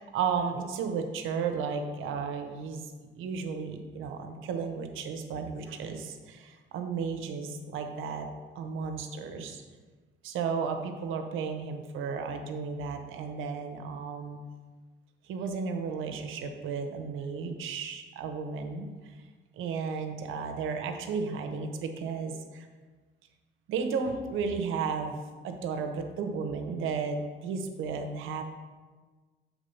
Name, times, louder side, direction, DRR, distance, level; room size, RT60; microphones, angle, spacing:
voice 1, 0.0-2.8 3.1-8.3 8.5-9.6 10.2-14.4 15.3-18.9 19.6-22.7 23.7-28.4, right 5 dB, 90° right, 5 dB, 0.8 m, -33 dB
7.2 x 3.6 x 5.5 m, 1.4 s
cardioid pair, 90°, 20 cm